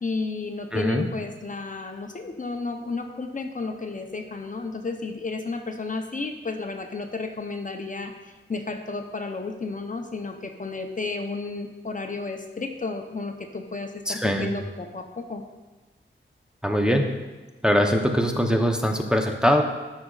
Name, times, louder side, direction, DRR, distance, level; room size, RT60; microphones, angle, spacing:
voice 1, 0.0-8.1 8.5-15.4, left 3 dB, 40° left, 4 dB, 0.7 m, -32 dB
voice 2, 0.7-1.1 14.1-14.5 16.6-17.0 17.6-19.6, equal, 5° right, 2 dB, 0.8 m, -22 dB
13.5 x 6.2 x 2.4 m, 1.2 s
wide cardioid pair, 65°, 21 cm